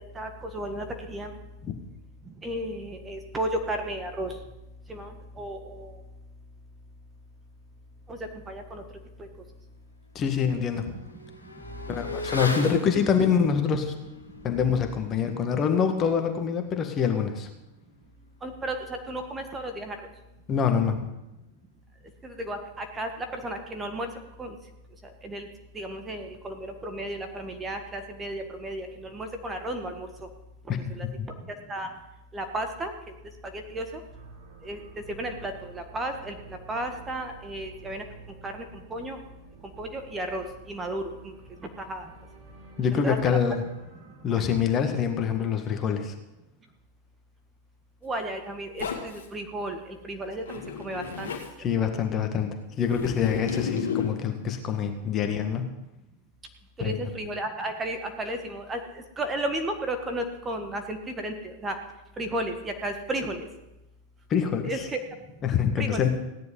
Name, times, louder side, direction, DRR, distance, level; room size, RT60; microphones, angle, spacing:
voice 1, 0.0-1.3 2.3-4.3 4.9-6.0 8.1-8.2 8.5-8.8 9.2-9.3 11.7-11.8 18.4-18.8 19.1-20.0 22.2-24.1 24.4-24.6 25.2-25.5 25.7-30.1 30.9-31.1 31.5-31.9 32.3-32.9 33.5-33.8 34.6-34.8 35.1-36.3 36.7-38.0 38.4-38.6 38.9-39.2 39.8-41.3 41.8-42.1 43.0-43.4 44.3-44.4 48.0-51.3 56.8-61.8 62.2-63.5 64.6-65.0 65.8-66.1, right 1 dB, 15° right, 6 dB, 1.7 m, -33 dB
Motorcycle / Accelerating revving vroom, 9.2-9.3 9.7-19.7 20.0-20.1, left 2 dB, 80° left, 1.8 m, -41 dB
voice 2, 10.2-10.9 11.9-13.9 14.4-17.5 20.5-21.1 31.0-31.3 42.8-43.6 44.2-46.1 51.6-55.7 56.8-57.0 64.3-64.9 65.4-66.1, left 7 dB, 30° left, 5 dB, 1.8 m, -25 dB
sound 1, 34.0-46.0, right 5 dB, 60° right, 7.0 m, -51 dB
Zipper (clothing), 48.8-49.3 50.4-51.5 52.9-54.2, left 7 dB, 60° left, 2.3 m, -32 dB
16.5 x 10.5 x 5.5 m, 0.94 s
figure-of-eight pair, 90°, 0 cm